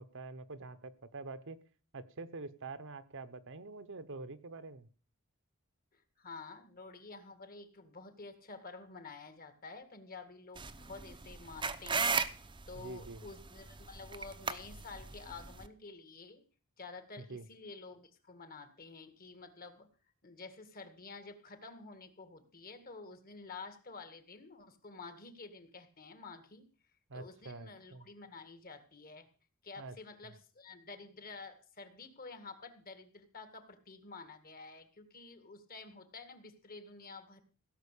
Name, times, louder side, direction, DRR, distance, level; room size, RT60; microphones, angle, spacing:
voice 1, 0.0-1.6 1.9-4.9 12.8-13.2 17.2-17.4 27.1-28.1 29.8-29.9, right 3 dB, 60° right, 12 dB, 1.0 m, -46 dB
voice 2, 5.9-16.4 16.8-19.9 20.2-26.7 27.1-29.3 29.6-37.4, left 4 dB, 40° left, 8 dB, 2.0 m, -50 dB
sound 1, 10.6-15.7, right 5 dB, 20° right, 0.8 m, -37 dB
16.5 x 6.1 x 8.4 m, 0.39 s
head